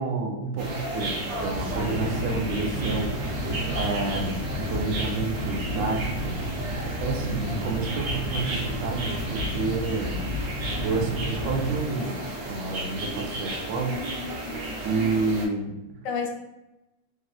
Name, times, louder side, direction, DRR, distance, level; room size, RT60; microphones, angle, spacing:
voice 1, 0.0-3.5 3.7-6.3 6.8-10.3 10.8-12.2 12.5-14.0 14.8-16.0, right 3 dB, 85° right, 1 dB, 1.2 m, -29 dB
sound 1, 0.6-15.5, equal, 65° right, 1.0 m, -30 dB
voice 2, 2.3-2.9 13.8-14.9 16.0-16.3, left 6 dB, 70° left, 1 dB, 0.8 m, -35 dB
3.2 x 2.5 x 2.3 m, 0.96 s
omnidirectional pair, 1.9 m